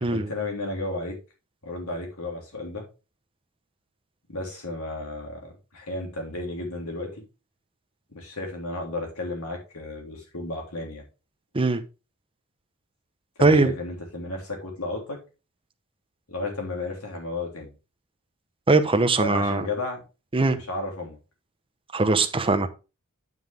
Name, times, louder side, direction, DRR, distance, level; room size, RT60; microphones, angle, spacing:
voice 1, 0.1-1.2 1.6-2.9 4.3-7.2 8.1-11.0 13.4-15.2 16.3-17.7 19.2-20.0 20.5-21.2, left 2 dB, 70° left, 3.3 m, -33 dB
voice 2, 13.4-13.7 18.7-19.7 20.3-20.6 21.9-22.7, right 3 dB, 25° right, 0.8 m, -20 dB
9.3 x 5.8 x 3.5 m
head